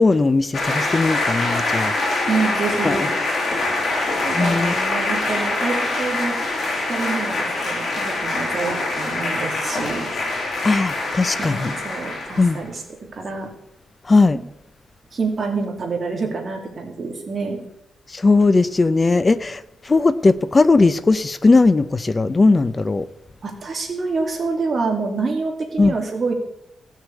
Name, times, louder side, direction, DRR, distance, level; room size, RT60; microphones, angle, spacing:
voice 1, 0.0-1.9 2.8-3.0 4.3-4.8 10.6-11.7 12.4-12.6 14.1-14.4 18.1-23.1 25.8-25.9, left 3 dB, 20° left, 13 dB, 0.7 m, -18 dB
sound 1, 0.5-12.6, left 2 dB, 45° left, 3.9 m, -24 dB
voice 2, 2.3-3.1 4.2-6.4 6.9-10.1 11.4-12.8 13.1-13.5 15.1-17.6 23.4-26.3, right 4 dB, 40° right, 2 dB, 2.6 m, -26 dB
17.0 x 6.4 x 8.4 m, 0.80 s
wide cardioid pair, 155°, 0 cm